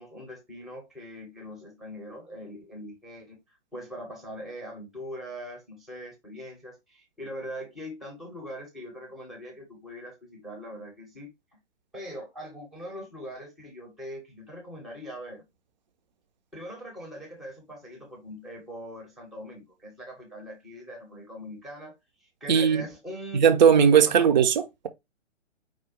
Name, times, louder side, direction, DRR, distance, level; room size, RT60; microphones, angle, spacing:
voice 1, 0.0-11.6 11.9-15.4 16.5-23.6 24.0-24.3, equal, ahead, 0.7 m, -42 dB
voice 2, 22.5-22.8 23.3-24.5, right 7 dB, 40° right, 0.6 m, -18 dB
4.8 x 2.2 x 4.3 m
figure-of-eight pair, 125°, 36 cm